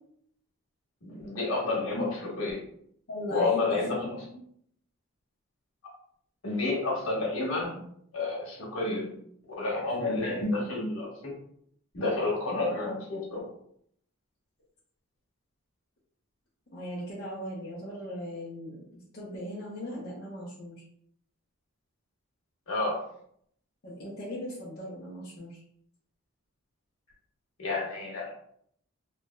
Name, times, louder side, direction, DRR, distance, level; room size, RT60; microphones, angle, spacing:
voice 1, 1.0-2.6 3.3-4.2 6.4-7.8 8.1-9.1 9.6-11.3 11.9-13.5 22.7-23.0 27.6-28.3, left 3 dB, 75° left, -4 dB, 1.1 m, -30 dB
voice 2, 3.1-3.6 4.0-4.1 10.1-10.3 16.7-18.8 19.1-20.8 23.8-25.6, equal, 50° left, -7 dB, 0.7 m, -38 dB
3.1 x 2.6 x 2.2 m, 0.67 s
head